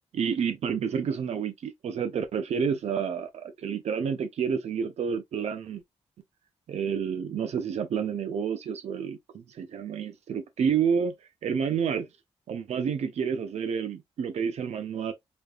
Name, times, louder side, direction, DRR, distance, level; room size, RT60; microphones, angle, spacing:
voice 1, 0.1-5.8 6.7-12.1 12.5-15.1, right 7 dB, 75° right, 0.5 m, -29 dB
5.1 x 2.4 x 2.4 m
wide cardioid pair, 135°, 11 cm